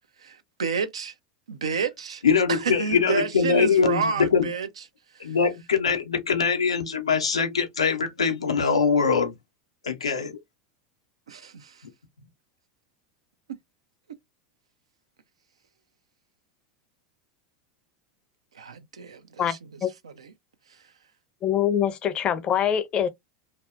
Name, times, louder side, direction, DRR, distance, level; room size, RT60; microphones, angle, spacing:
voice 1, 0.2-1.1 1.5-2.2 2.5-4.8 5.1-5.4 11.3-11.8 18.5-20.3 20.7-20.8, right 6 dB, 85° right, 0.4 m, -30 dB
voice 2, 2.2-4.5 5.2-9.3 9.8-10.4, left 5 dB, 90° left, 0.6 m, -23 dB
voice 3, 19.4-19.9 21.4-23.1, left 9 dB, 35° left, 0.5 m, -24 dB
2.7 x 2.0 x 2.3 m
hypercardioid pair, 90°, 3 cm